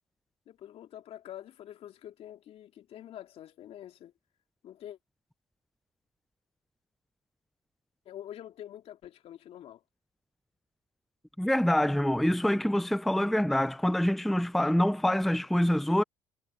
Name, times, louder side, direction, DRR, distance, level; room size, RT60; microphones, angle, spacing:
voice 1, 0.5-4.1 4.6-5.0 8.1-9.8, left 11 dB, 60° left, 2.5 m, -46 dB
voice 2, 11.4-16.0, left 1 dB, ahead, 0.6 m, -25 dB
hypercardioid pair, 65°, 12 cm